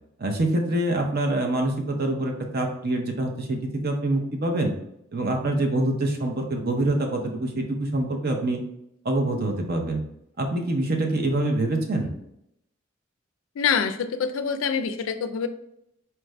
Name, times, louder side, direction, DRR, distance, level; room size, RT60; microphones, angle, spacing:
voice 1, 0.2-4.7 5.1-8.6 9.0-10.0 10.4-12.1, right 1 dB, 50° right, 3 dB, 0.7 m, -25 dB
voice 2, 13.6-15.5, left 6 dB, 85° left, 9 dB, 0.4 m, -25 dB
4.4 x 2.5 x 3.2 m, 0.79 s
head